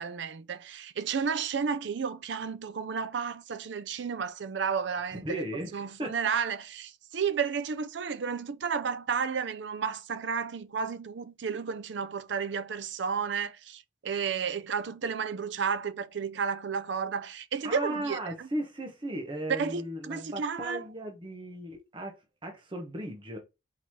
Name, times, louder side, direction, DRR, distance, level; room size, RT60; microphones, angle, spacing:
voice 1, 0.0-5.4 5.7-18.2 19.5-20.8, right 6 dB, 70° right, 0.5 m, -32 dB
voice 2, 5.1-6.1 17.6-23.4, right 1 dB, 25° right, 0.9 m, -36 dB
4.6 x 3.9 x 2.8 m
head